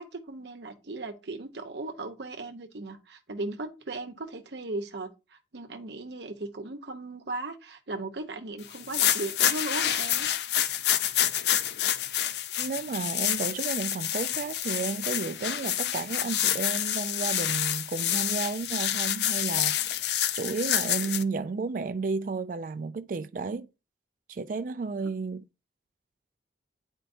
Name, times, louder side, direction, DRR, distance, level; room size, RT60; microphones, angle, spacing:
voice 1, 0.0-10.3, right 2 dB, 75° right, 0.9 m, -37 dB
sound 1, 8.7-21.2, left 11 dB, 70° left, 0.4 m, -28 dB
voice 2, 12.6-19.8 20.3-23.7 24.3-25.4, right 4 dB, 45° right, 0.3 m, -32 dB
9.0 x 4.4 x 2.6 m
head